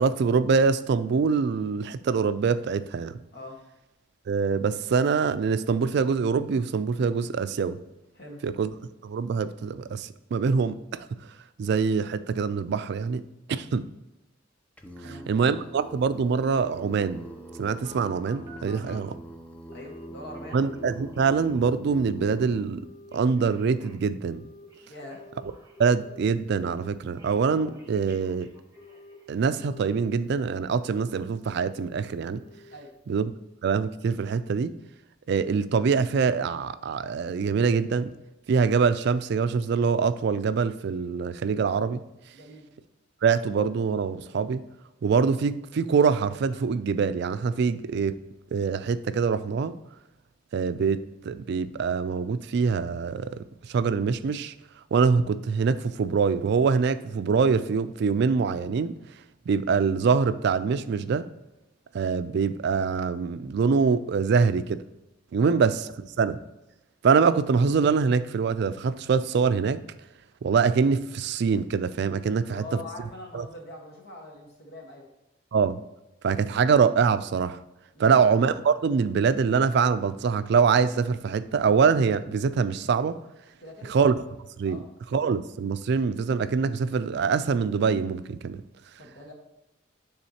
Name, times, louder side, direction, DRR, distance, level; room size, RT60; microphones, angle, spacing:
voice 1, 0.0-3.2 4.3-7.8 8.4-8.7 9.0-10.8 11.6-13.2 13.5-13.9 15.0-17.2 17.6-19.1 20.5-24.4 25.8-28.5 29.3-32.4 33.1-33.3 33.6-34.8 35.3-38.1 38.5-42.0 43.2-44.6 45.0-48.2 48.5-49.8 50.5-54.5 54.9-58.9 59.5-61.3 61.9-64.8 65.3-65.9 66.2-66.4 67.0-69.8 70.4-72.7 73.3-73.5 75.5-75.8 76.2-77.6 78.0-83.2 83.8-84.2 84.6-84.8 85.1-88.6, right 5 dB, 60° right, 13 dB, 0.3 m, -24 dB
Singing, 14.8-22.7, right 1 dB, 5° left, 0.5 m, -44 dB
Telephone, 15.8-19.1 19.7-20.1 20.3-21.7 22.0-22.4 22.8-26.1 26.5-26.9 27.2-29.2 29.6-30.5 30.8-31.2 31.6-32.0 32.3-32.7 33.1-33.2, left 1 dB, 20° right, 1.4 m, -49 dB
voice 2, 19.7-20.6 24.9-25.2 32.7-32.9 42.3-42.6 65.4-65.6 72.3-75.1 77.9-78.2 83.6-83.9 84.6-84.8 89.0-89.3, left 1 dB, 55° left, 0 dB, 1.4 m, -43 dB
9.8 x 3.5 x 2.8 m, 0.93 s
head